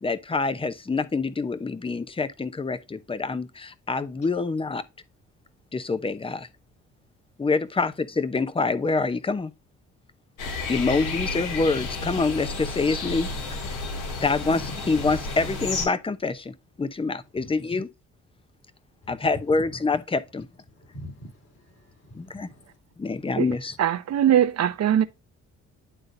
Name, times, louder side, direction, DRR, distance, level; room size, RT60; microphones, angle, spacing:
voice 1, 0.0-4.8 5.7-6.5 7.4-9.5 10.7-13.3 13.7-13.8 14.2-17.9 19.1-20.5 22.1-22.5 23.0-23.7, left 3 dB, 20° left, 0.8 m, -26 dB
sound 1, 10.4-15.9, left 3 dB, 80° left, 2.5 m, -31 dB
voice 2, 19.0-19.6 20.7-22.8, equal, 55° left, 3.5 m, -44 dB
voice 3, 23.8-25.0, right 10 dB, 60° right, 0.9 m, -21 dB
11.0 x 3.8 x 2.6 m
cardioid pair, 90°, 30 cm